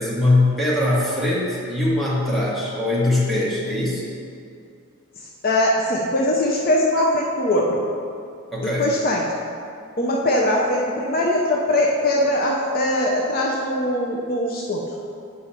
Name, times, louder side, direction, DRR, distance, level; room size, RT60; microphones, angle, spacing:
voice 1, 0.0-4.0 8.5-8.8, left 2 dB, ahead, -8 dB, 1.2 m, -21 dB
voice 2, 5.4-7.8 8.6-9.3 10.0-14.9, left 1 dB, 40° left, -2 dB, 0.5 m, -21 dB
7.0 x 5.1 x 4.2 m, 2.4 s
head